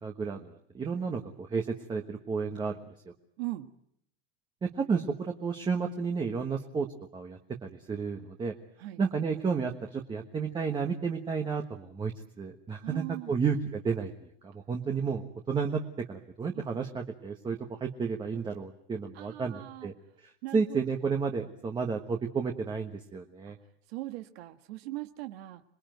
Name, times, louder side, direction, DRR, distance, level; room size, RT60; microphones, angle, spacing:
voice 1, 0.0-2.7 3.0-3.1 4.6-6.9 7.1-8.5 9.0-12.1 12.4-23.6, right 5 dB, 15° right, 3 dB, 1.3 m, -32 dB
voice 2, 3.4-3.7 8.8-9.0 12.8-13.4 16.7-16.8 19.1-19.9 20.4-20.8 23.9-25.6, right 18 dB, 85° right, 7 dB, 1.6 m, -39 dB
27.5 x 21.0 x 9.2 m, 0.73 s
cardioid pair, 170°, 30 cm